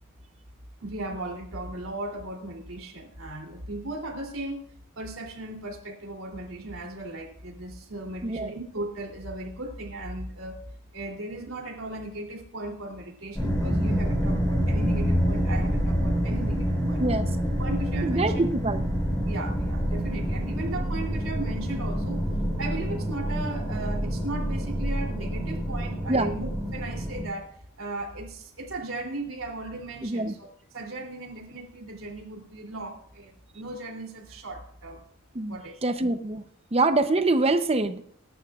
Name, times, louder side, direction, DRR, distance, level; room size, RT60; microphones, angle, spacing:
voice 1, 0.8-4.6 5.0-10.6 10.9-17.1 17.6-18.4 19.3-22.2 22.6-27.5 27.8-30.5 30.7-35.0 35.5-35.8, right 2 dB, 85° right, 2 dB, 3.1 m, -36 dB
voice 2, 8.2-8.5 17.0-17.3 18.0-18.8 26.1-26.3 30.0-30.3 35.3-36.4 36.7-38.0, right 2 dB, 30° right, 9 dB, 0.7 m, -25 dB
sound 1, 13.4-27.2, equal, 15° left, 5.8 m, -27 dB
22.0 x 11.5 x 2.4 m, 0.65 s
head